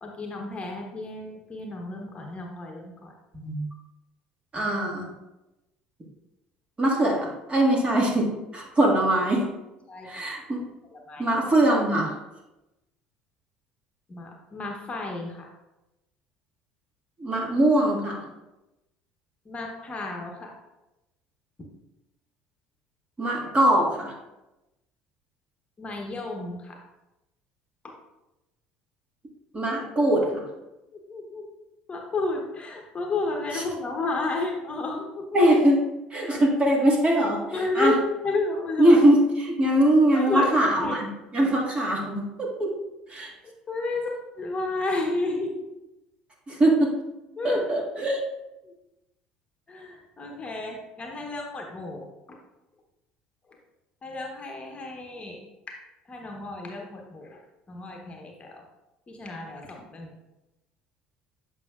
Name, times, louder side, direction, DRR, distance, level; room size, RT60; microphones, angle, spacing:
voice 1, 0.0-3.1 9.9-10.1 10.9-11.2 14.1-15.5 19.5-20.5 25.8-26.8 27.8-27.9 30.9-31.4 31.9-35.3 37.5-38.9 40.1-40.5 40.8-41.0 43.7-45.6 47.4-47.6 48.6-48.7 49.7-52.4 54.0-55.4 55.7-55.8 56.1-57.4 57.7-58.6 59.1-60.1, left 3 dB, 30° left, 1 dB, 1.1 m, -32 dB
voice 2, 4.5-5.1 6.8-9.5 10.0-10.6 11.2-12.1 17.2-18.2 23.2-24.1 29.5-30.4 33.5-33.6 35.3-35.8 36.1-38.0 38.8-42.7 43.1-43.3 46.5-46.9 47.4-48.2, right 1 dB, 25° right, -2 dB, 1.9 m, -22 dB
8.0 x 5.6 x 2.4 m, 0.98 s
hypercardioid pair, 65°, 4 cm